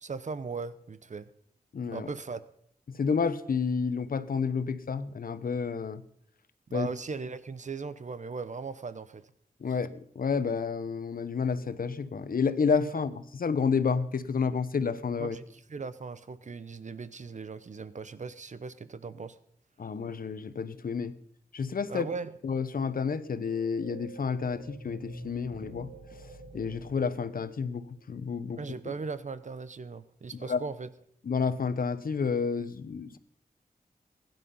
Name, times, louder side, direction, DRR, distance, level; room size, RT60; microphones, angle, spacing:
voice 1, 0.0-1.3 1.9-2.4 6.7-9.3 15.2-19.4 21.9-22.3 28.6-30.9, right 4 dB, 55° right, 14 dB, 0.8 m, -38 dB
voice 2, 1.7-2.1 2.9-6.0 6.7-6.9 9.6-15.4 19.8-21.1 21.5-22.1 22.4-26.2 26.5-28.6 30.4-30.6 31.2-33.2, left 5 dB, 70° left, 13 dB, 1.1 m, -30 dB
sound 1, 23.4-28.0, right 1 dB, 75° right, 2.3 m, -46 dB
21.5 x 11.0 x 5.6 m, 0.70 s
wide cardioid pair, 105°, 15 cm